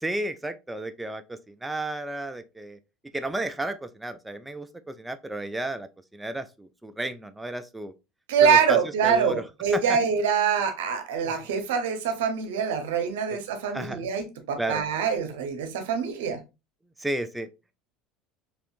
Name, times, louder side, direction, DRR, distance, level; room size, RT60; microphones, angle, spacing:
voice 1, 0.0-2.8 3.1-7.9 8.4-9.4 9.7-10.0 11.2-11.3 13.3-13.4 13.7-14.0 14.6-14.9 17.0-17.5, right 1 dB, 10° right, 0.4 m, -33 dB
voice 2, 8.3-16.4, right 6 dB, 85° right, 0.7 m, -25 dB
3.3 x 2.9 x 2.6 m
supercardioid pair, 90°, 0 cm